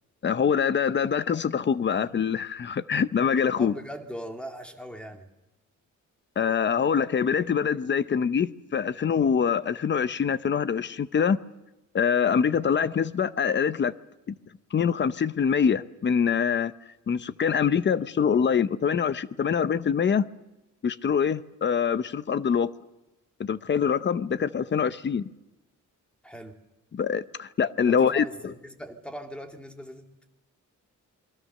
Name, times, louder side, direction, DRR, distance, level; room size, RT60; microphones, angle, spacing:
voice 1, 0.2-3.7 6.4-11.4 11.9-13.9 14.3-14.4 14.7-16.7 17.1-20.3 20.8-22.7 23.4-25.3 26.9-28.5, left 7 dB, 35° left, 15 dB, 0.8 m, -24 dB
voice 2, 3.6-5.3 26.2-26.6 27.8-30.3, equal, 5° left, 4 dB, 2.4 m, -40 dB
28.0 x 22.5 x 6.6 m, 0.97 s
wide cardioid pair, 160°, 30 cm